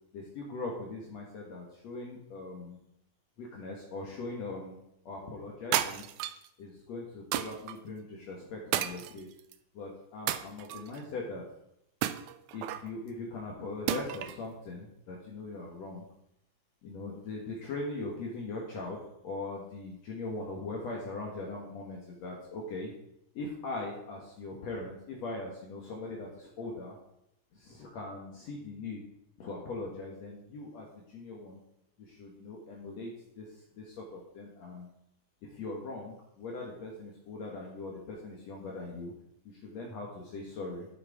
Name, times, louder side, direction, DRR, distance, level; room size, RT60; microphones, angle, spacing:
voice 1, 0.1-2.8 3.4-4.8 5.1-6.1 6.6-9.3 9.7-11.4 12.5-16.1 16.8-19.0 19.2-22.9 23.3-27.0 27.5-29.0 29.4-31.6 32.0-33.5 33.7-34.9 35.4-39.1 39.5-40.9, left 3 dB, 60° left, -2 dB, 2.5 m, -40 dB
sound 1, 5.7-6.5 7.3-7.8 8.7-9.5 10.3-11.0 12.0-12.9 13.9-14.4, right 12 dB, 80° right, 2.0 m, -32 dB
12.0 x 6.8 x 4.9 m, 0.78 s
omnidirectional pair, 3.5 m